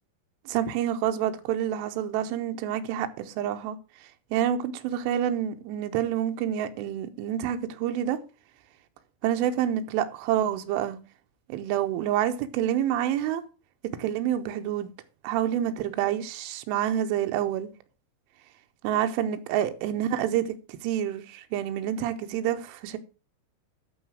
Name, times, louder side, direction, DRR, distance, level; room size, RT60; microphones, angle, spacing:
voice 1, 0.5-3.8 4.3-8.2 9.2-11.0 11.5-13.4 14.0-14.9 15.2-17.7 18.8-23.0, right 10 dB, 85° right, 3.2 m, -28 dB
11.0 x 4.8 x 6.2 m
omnidirectional pair, 5.6 m